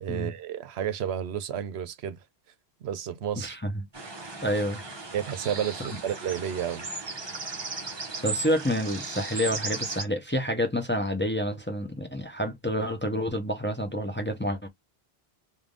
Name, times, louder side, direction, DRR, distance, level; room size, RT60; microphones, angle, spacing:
voice 1, 0.0-2.2 2.8-3.6 5.1-6.8, right 9 dB, 90° right, 0.9 m, -31 dB
voice 2, 3.4-3.7 4.4-4.8 8.2-14.7, equal, 10° left, 0.8 m, -28 dB
sound 1, 3.9-10.0, right 3 dB, 25° right, 0.8 m, -36 dB
3.4 x 2.7 x 3.7 m
omnidirectional pair, 1.1 m